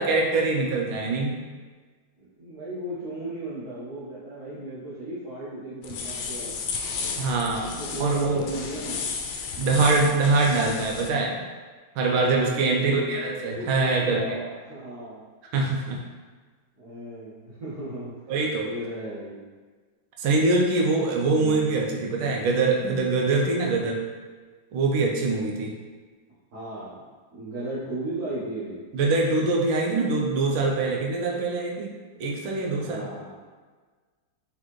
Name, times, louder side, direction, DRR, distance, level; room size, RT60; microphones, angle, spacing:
voice 1, 0.0-1.4 7.2-8.5 9.6-11.4 12.0-14.4 15.5-16.0 18.3-18.7 20.2-24.0 24.7-25.7 28.9-31.9 32.2-33.1, right 3 dB, 80° right, 0 dB, 1.4 m, -24 dB
voice 2, 2.2-6.5 7.6-9.1 12.4-15.2 16.8-18.1 18.6-19.4 21.2-21.9 26.5-27.0 27.3-28.8 32.7-33.4, right 1 dB, 55° right, -12 dB, 1.5 m, -36 dB
sound 1, 5.8-11.1, left 5 dB, 85° left, 1.4 m, -33 dB
3.9 x 3.9 x 3.1 m, 1.4 s
omnidirectional pair, 2.2 m